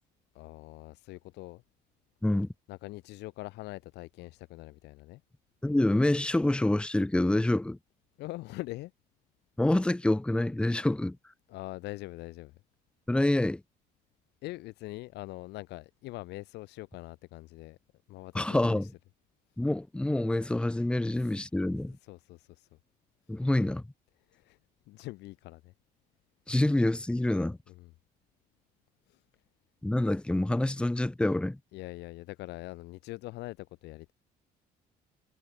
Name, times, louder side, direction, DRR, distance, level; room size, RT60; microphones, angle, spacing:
voice 1, 0.3-1.6 2.7-5.2 8.2-8.9 11.5-12.6 14.4-17.8 18.1-18.9 21.1-21.4 22.0-22.7 24.3-24.6 24.9-25.7 27.7-27.9 29.1-29.2 31.7-34.1, left 19 dB, 85° left, 3.6 m, -43 dB
voice 2, 5.6-7.8 9.6-11.2 13.1-13.6 18.3-18.9 19.6-22.0 23.3-23.8 26.5-27.6 29.8-31.6, left 1 dB, 5° left, 1.1 m, -27 dB
cardioid pair, 110°, 17 cm